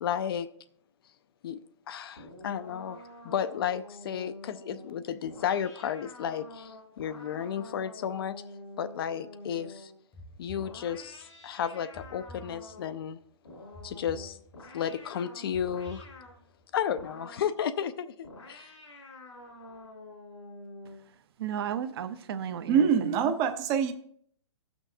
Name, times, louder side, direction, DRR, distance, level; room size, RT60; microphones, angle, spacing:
voice 1, 0.0-0.5 1.4-1.6 1.9-8.4 8.8-9.9 10.4-13.2 13.8-14.4 14.7-16.1 16.7-18.7, left 8 dB, 50° left, 0.5 m, -33 dB
sound 1, 2.2-10.0 10.6-13.1 13.4-16.4 17.0-17.6 18.2-21.1, left 2 dB, 90° left, 3.3 m, -48 dB
sound 2, 10.1-11.3 11.9-13.1 13.7-14.9 15.5-16.7, equal, 10° left, 0.8 m, -50 dB
voice 2, 21.4-23.3, right 9 dB, 55° right, 0.7 m, -34 dB
voice 3, 22.7-23.9, right 7 dB, 20° right, 0.5 m, -24 dB
17.0 x 6.1 x 2.7 m
hypercardioid pair, 155°, 15 cm